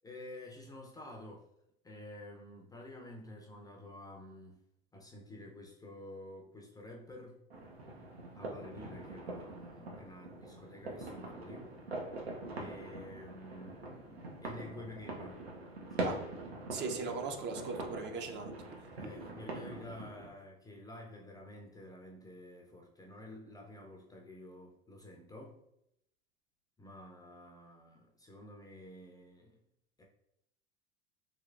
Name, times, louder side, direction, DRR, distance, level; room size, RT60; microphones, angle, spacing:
voice 1, 0.0-1.5 1.8-4.6 4.9-7.4 8.3-11.7 12.5-15.4 15.7-16.5 17.4-17.7 19.0-25.6 26.8-29.6 30.0-30.1, left 1 dB, 10° left, 0 dB, 0.5 m, -50 dB
sound 1, 7.5-20.3, right 2 dB, 90° right, 0.7 m, -43 dB
voice 2, 16.7-18.6, right 4 dB, 35° right, 4 dB, 0.5 m, -38 dB
3.3 x 3.0 x 2.4 m, 0.79 s
hypercardioid pair, 80°, 30 cm